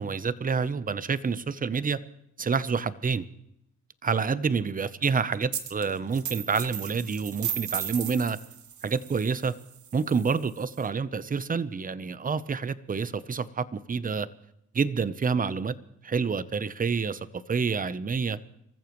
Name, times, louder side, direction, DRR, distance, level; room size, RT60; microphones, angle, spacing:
voice 1, 0.0-2.0 2.4-3.3 4.0-8.4 8.8-9.5 9.9-14.3 14.7-15.8 16.0-18.4, right 5 dB, 25° right, 16 dB, 0.8 m, -28 dB
sound 1, 5.5-5.8 6.1-10.8, right 9 dB, 70° right, 1.5 m, -36 dB
26.5 x 14.5 x 3.2 m, 0.78 s
cardioid pair, 90°, 31 cm